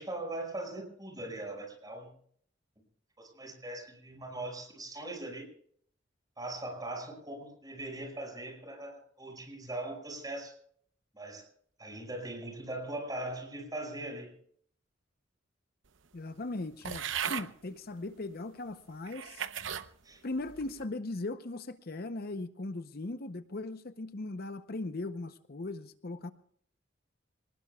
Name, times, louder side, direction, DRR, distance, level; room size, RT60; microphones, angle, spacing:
voice 1, 0.0-2.1 3.2-5.5 6.4-10.5 11.1-11.5 11.8-14.3 20.0-20.2, right 1 dB, 20° right, 2 dB, 5.6 m, -40 dB
voice 2, 16.1-19.4 20.2-26.3, left 2 dB, 55° left, 11 dB, 0.7 m, -38 dB
sound 1, 16.8-17.5 18.3-18.4 19.1-19.9 20.4-20.8, right 8 dB, 80° right, 0.8 m, -36 dB
26.5 x 19.5 x 2.3 m, 0.62 s
head